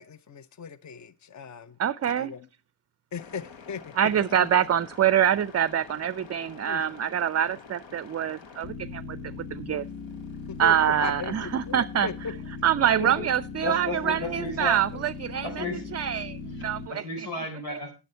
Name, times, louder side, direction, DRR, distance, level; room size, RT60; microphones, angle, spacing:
voice 1, 0.0-1.8 2.2-2.5 3.1-3.9 4.4-4.5 6.7-6.8 10.5-12.3, left 5 dB, 40° left, 0.8 m, -37 dB
voice 2, 1.8-2.3 4.0-9.2 9.5-9.9 10.6-12.1 12.6-15.7 15.9-17.0, right 9 dB, 35° right, 0.4 m, -25 dB
sound 1, 3.2-16.9, left 5 dB, 65° left, 1.4 m, -41 dB
voice 3, 13.0-13.3 13.6-14.8 15.4-15.9 16.6-17.9, left 3 dB, 90° left, 4.4 m, -33 dB
9.8 x 9.4 x 4.4 m
supercardioid pair, 45°, 47 cm